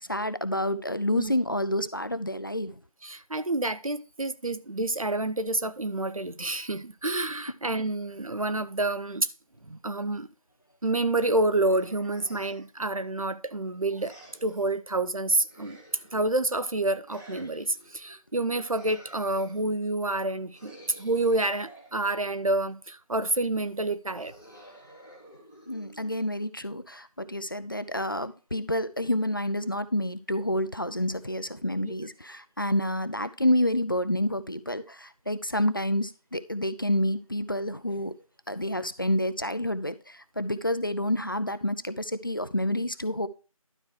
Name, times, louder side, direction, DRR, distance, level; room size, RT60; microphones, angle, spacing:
voice 1, 0.1-2.7 25.7-38.1 38.5-43.3, left 1 dB, 35° left, 0.5 m, -28 dB
voice 2, 3.0-9.3 9.7-10.3 10.8-14.1 14.4-15.8 16.1-24.3 31.8-31.9, right 2 dB, 70° right, 0.9 m, -28 dB
sound 1, 11.7-12.8 13.9-14.7 15.4-16.4 17.1-17.9 18.6-19.7 20.5-22.6 24.1-26.5, right 1 dB, 5° left, 0.8 m, -51 dB
12.0 x 4.6 x 4.5 m
figure-of-eight pair, 170°, 19 cm